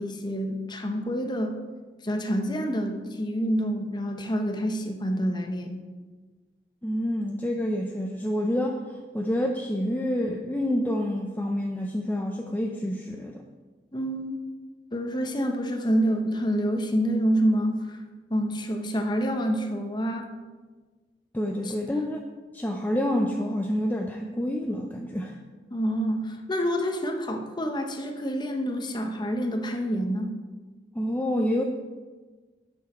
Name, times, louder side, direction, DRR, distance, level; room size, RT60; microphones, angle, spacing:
voice 1, 0.0-1.6 2.0-5.8 13.9-14.4 14.9-18.0 18.3-20.3 21.6-21.7 25.7-30.3, equal, 25° left, 4 dB, 0.9 m, -27 dB
voice 2, 6.8-8.8 9.1-13.4 21.3-22.3 22.5-25.4 30.9-31.6, equal, 10° left, 2 dB, 0.5 m, -28 dB
9.7 x 6.3 x 4.3 m, 1.4 s
head